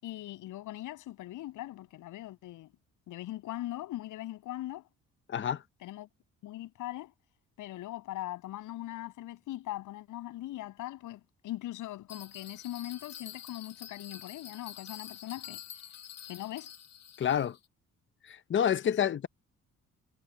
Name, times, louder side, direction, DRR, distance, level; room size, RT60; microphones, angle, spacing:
voice 1, 0.0-2.7 3.1-4.9 5.8-6.1 6.4-7.1 7.6-15.6 16.3-16.7 18.8-19.1, left 15 dB, 90° left, 7.3 m, -40 dB
voice 2, 5.3-5.6 17.2-17.6 18.2-19.3, left 9 dB, 40° left, 0.8 m, -28 dB
Bell, 12.1-17.6, left 9 dB, 60° left, 2.1 m, -47 dB
cardioid pair, 90°, 30 cm